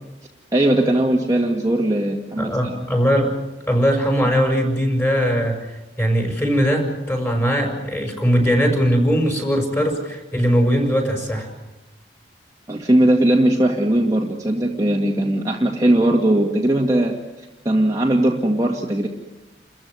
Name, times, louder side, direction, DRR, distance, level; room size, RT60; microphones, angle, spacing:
voice 1, 0.5-2.5 12.7-17.1 17.6-19.1, right 1 dB, 20° right, -1 dB, 2.1 m, -19 dB
voice 2, 2.4-3.3 3.7-11.5, equal, 15° left, 3 dB, 5.8 m, -20 dB
29.5 x 15.0 x 9.7 m, 1.0 s
head